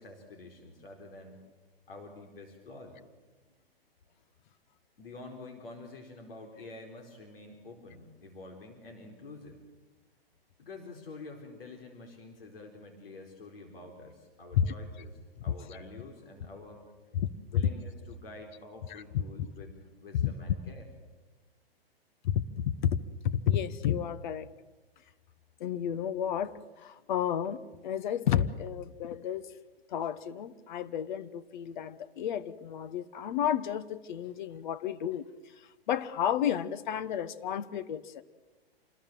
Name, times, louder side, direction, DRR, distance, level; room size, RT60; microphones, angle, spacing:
voice 1, 0.0-1.4 1.9-3.0 3.5-3.6 5.0-9.6 10.6-16.9 17.5-20.9, left 3 dB, 65° left, 3 dB, 4.5 m, -48 dB
voice 2, 18.9-19.5 20.2-20.3 22.2-23.0 23.2-24.5 25.6-29.5 29.9-35.3 35.6-38.2, left 9 dB, 50° left, 13 dB, 1.1 m, -31 dB
27.0 x 20.5 x 7.6 m, 1.2 s
hypercardioid pair, 120°, 31 cm